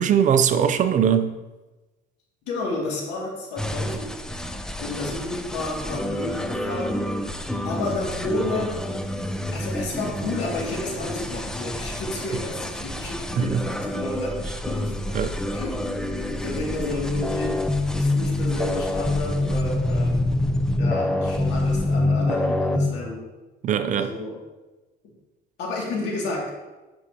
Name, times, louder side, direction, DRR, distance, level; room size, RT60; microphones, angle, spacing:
voice 1, 0.0-1.4 13.4-13.6 15.1-15.4 23.6-24.1, right 8 dB, 45° right, 9 dB, 0.6 m, -21 dB
voice 2, 2.5-4.1 4.8-7.0 7.6-9.0 9.5-14.3 14.7-15.2 15.5-15.8 16.1-17.6 17.9-20.3 20.7-23.2 23.9-24.4 25.6-26.5, left 2 dB, 80° left, -3 dB, 2.4 m, -31 dB
sound 1, 3.6-22.9, left 1 dB, 5° left, 0.5 m, -27 dB
9.6 x 6.2 x 2.9 m, 1.1 s
cardioid pair, 130°, 18 cm